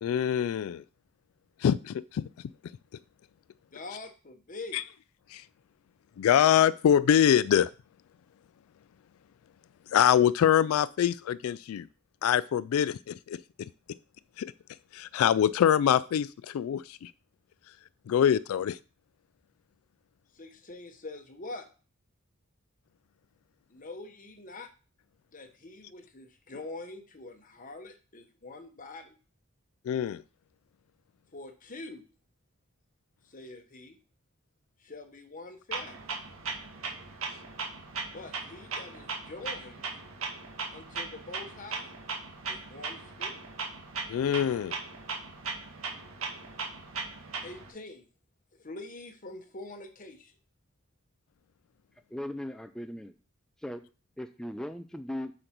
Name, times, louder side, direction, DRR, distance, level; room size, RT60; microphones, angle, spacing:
voice 1, 0.0-0.8 1.6-2.2 4.7-4.8 5.3-5.4 6.2-7.7 9.9-11.9 12.2-13.7 14.4-14.5 14.9-17.1 18.1-18.8 29.9-30.2 44.1-44.7, left 9 dB, 85° left, 17 dB, 0.3 m, -24 dB
voice 2, 3.7-4.8 20.3-21.7 23.7-24.7 25.3-29.2 31.3-32.0 33.2-34.0 34.8-36.0 38.1-39.9 40.7-41.9 42.5-43.4 47.4-48.1 48.6-50.3, left 2 dB, 40° left, 6 dB, 1.1 m, -44 dB
Clock, 35.7-47.7, right 4 dB, 75° right, 1.6 m, -38 dB
voice 3, 52.1-53.1 53.6-53.8 54.2-55.3, left 1 dB, 5° left, 7 dB, 0.3 m, -38 dB
7.8 x 5.1 x 4.5 m, 0.37 s
head